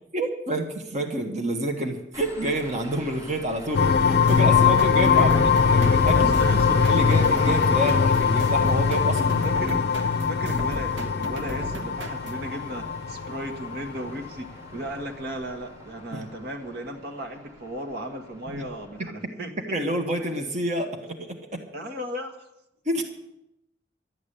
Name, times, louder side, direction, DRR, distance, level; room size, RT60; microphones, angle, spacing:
voice 1, 0.1-6.3 6.9-9.4 16.1-16.3 18.5-18.6 19.0-19.1 19.7-21.6 22.8-23.0, right 1 dB, 40° right, 3 dB, 1.5 m, -28 dB
sound 1, 2.1-19.1, equal, 20° right, 2.0 m, -42 dB
sound 2, 3.7-14.3, left 6 dB, 55° left, 0.5 m, -21 dB
sound 3, 4.3-12.5, right 1 dB, 80° right, 1.1 m, -37 dB
voice 2, 5.1-5.6 6.1-7.1 7.4-8.0 9.4-19.5 21.7-22.5, right 1 dB, 60° right, 4 dB, 1.6 m, -36 dB
12.5 x 8.6 x 10.0 m, 0.85 s
head